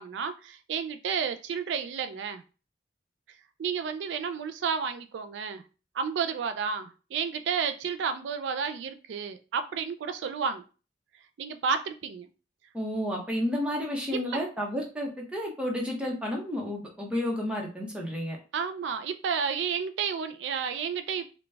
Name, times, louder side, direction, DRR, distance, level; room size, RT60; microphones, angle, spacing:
voice 1, 0.0-2.4 3.6-5.6 5.9-10.6 11.4-12.3 14.3-14.4 18.5-21.3, right 6 dB, 80° right, 9 dB, 0.3 m, -31 dB
voice 2, 12.7-18.4, left 1 dB, 5° right, -1 dB, 0.9 m, -31 dB
4.0 x 2.2 x 3.3 m, 0.34 s
head